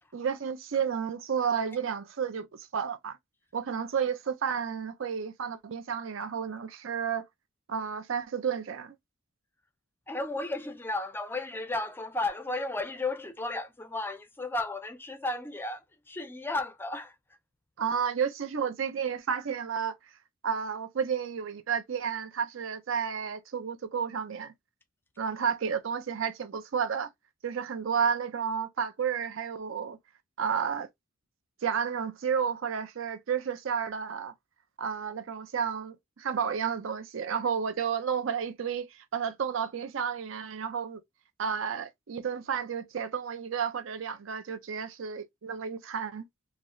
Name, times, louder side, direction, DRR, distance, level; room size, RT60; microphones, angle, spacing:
voice 1, 0.1-3.2 3.5-7.3 7.7-8.9 17.8-19.9 20.4-24.5 25.2-27.1 27.4-30.0 30.4-30.9 31.6-34.3 34.8-41.0 41.4-46.3, right 7 dB, 65° right, 0.5 m, -31 dB
voice 2, 10.1-17.2, left 2 dB, 10° left, 0.4 m, -34 dB
3.9 x 2.0 x 3.0 m
head